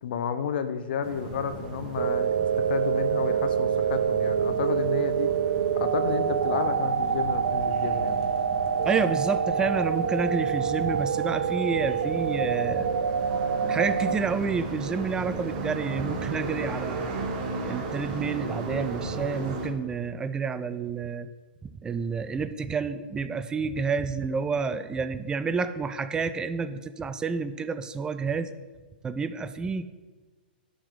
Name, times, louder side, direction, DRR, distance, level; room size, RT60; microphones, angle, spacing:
voice 1, 0.0-5.3 5.8-8.2, left 7 dB, 65° left, 11 dB, 0.7 m, -31 dB
sound 1, 1.0-19.7, right 3 dB, 45° right, 1.4 m, -36 dB
sound 2, 2.0-14.2, right 7 dB, 80° right, 0.4 m, -26 dB
voice 2, 8.8-12.9 13.7-17.2 17.6-21.3 21.8-28.5 29.0-29.9, right 5 dB, 15° right, 12 dB, 0.4 m, -29 dB
11.5 x 3.9 x 4.7 m, 1.3 s
hypercardioid pair, 125°, 6 cm